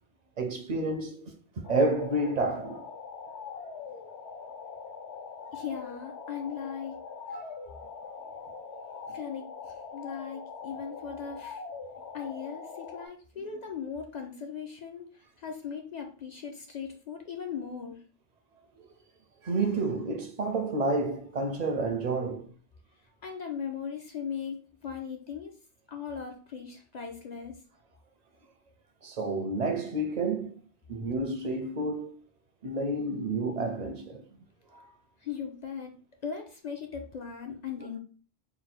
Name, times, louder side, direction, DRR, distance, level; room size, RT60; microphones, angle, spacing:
voice 1, 0.4-2.9 7.3-7.5 18.8-18.9 19.4-22.5 29.0-30.5 30.9-32.1 32.6-34.3 34.7-34.9, right 2 dB, 50° right, 0.5 m, -30 dB
sound 1, 1.6-13.1, left 5 dB, 75° left, 0.9 m, -42 dB
voice 2, 5.5-7.0 7.3-7.4 9.1-11.6 12.1-18.0 23.2-25.5 25.9-27.5 35.2-38.0, left 7 dB, 55° left, 0.5 m, -38 dB
3.9 x 2.2 x 4.2 m
omnidirectional pair, 1.2 m